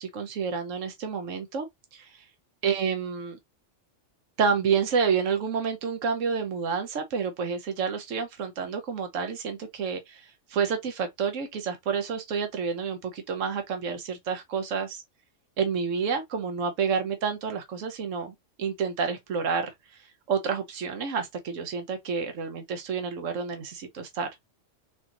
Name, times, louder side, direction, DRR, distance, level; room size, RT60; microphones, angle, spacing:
voice 1, 0.0-2.2 2.6-3.4 4.4-15.0 15.6-19.7 20.3-24.3, right 6 dB, 90° right, 1.2 m, -29 dB
4.1 x 3.8 x 2.9 m
omnidirectional pair, 1.3 m